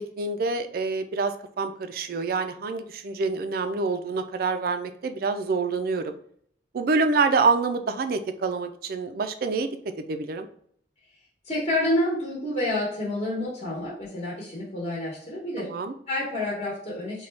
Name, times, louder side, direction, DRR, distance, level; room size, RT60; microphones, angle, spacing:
voice 1, 0.0-6.1 6.7-9.7 10.1-10.5 15.6-15.9, right 4 dB, 55° right, 9 dB, 0.3 m, -26 dB
voice 2, 11.4-15.7 16.1-17.3, left 1 dB, 35° left, -5 dB, 1.0 m, -28 dB
3.8 x 2.2 x 3.2 m, 0.63 s
head